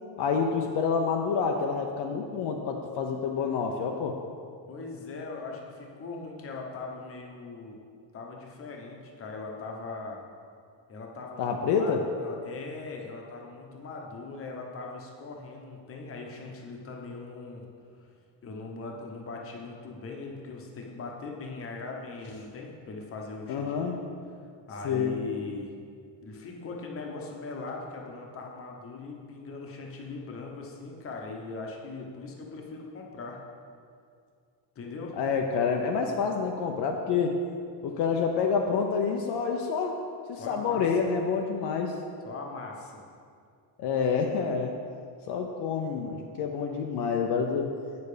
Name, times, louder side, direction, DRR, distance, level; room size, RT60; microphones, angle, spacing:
voice 1, 0.2-4.2 11.4-12.0 23.5-24.0 24.8-25.2 35.2-37.4 37.8-40.0 40.3-42.0 43.8-44.7 45.3-47.7, left 5 dB, 60° left, 2 dB, 0.7 m, -28 dB
voice 2, 4.7-7.8 8.1-10.2 10.9-17.6 17.9-18.1 18.4-24.0 24.7-25.7 26.2-33.4 34.7-35.1 40.3-41.0 42.2-43.0, left 3 dB, 30° left, 0 dB, 1.0 m, -40 dB
8.2 x 6.8 x 4.9 m, 2.3 s
cardioid pair, 175°, 47 cm